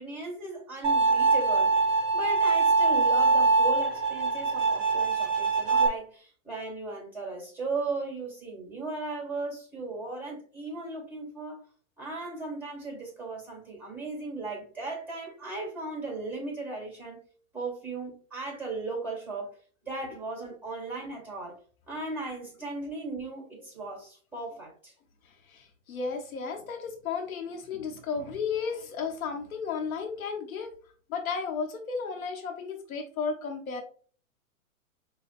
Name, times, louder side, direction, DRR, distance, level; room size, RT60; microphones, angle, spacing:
voice 1, 0.0-11.6 12.0-17.2 17.5-19.5 19.8-21.6 21.9-24.9, right 3 dB, 5° right, -1 dB, 1.8 m, -37 dB
Bowed string instrument, 0.8-5.9, right 3 dB, 35° right, 1.3 m, -23 dB
voice 2, 25.5-30.7 31.1-33.8, left 5 dB, 85° left, 3 dB, 1.0 m, -33 dB
5.9 x 2.2 x 2.5 m, 0.42 s
hypercardioid pair, 135°, 41 cm